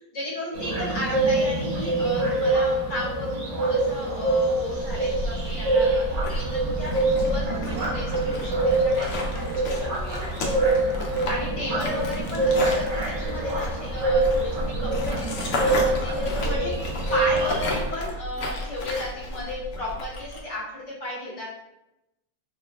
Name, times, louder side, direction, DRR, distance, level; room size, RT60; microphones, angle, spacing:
voice 1, 0.1-10.6 11.3-21.5, left 1 dB, 50° left, -5 dB, 1.0 m, -34 dB
sound 1, 0.5-17.7, right 2 dB, 55° right, 1.1 m, -25 dB
sound 2, 4.8-20.4, left 1 dB, 90° left, 0.6 m, -32 dB
3.1 x 2.3 x 3.4 m, 0.90 s
omnidirectional pair, 2.0 m